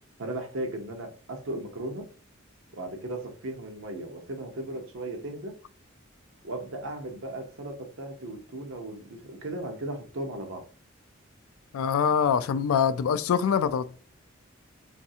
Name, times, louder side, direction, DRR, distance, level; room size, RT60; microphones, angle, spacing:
voice 1, 0.2-2.1 2.7-5.5 6.4-10.6, right 1 dB, 65° right, 0.7 m, -36 dB
voice 2, 11.7-13.8, left 7 dB, 80° left, 0.3 m, -24 dB
3.2 x 2.6 x 2.7 m
head